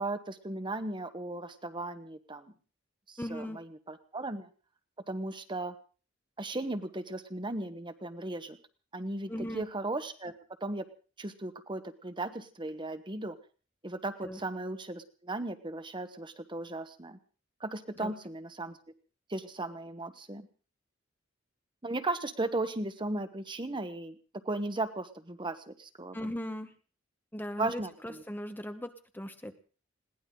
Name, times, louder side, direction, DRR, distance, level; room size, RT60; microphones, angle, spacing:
voice 1, 0.0-2.5 3.1-4.5 5.1-5.7 6.4-8.6 8.9-10.3 10.6-10.8 11.2-13.4 13.8-17.2 17.6-18.8 19.3-20.5 21.8-24.1 24.4-26.3 27.6-27.9, right 2 dB, 25° right, 10 dB, 1.2 m, -36 dB
voice 2, 3.2-3.6 9.3-9.6 14.2-14.4 17.9-18.1 26.1-26.7 27.3-29.5, equal, 10° left, 8 dB, 1.0 m, -38 dB
21.0 x 17.5 x 3.9 m, 0.38 s
head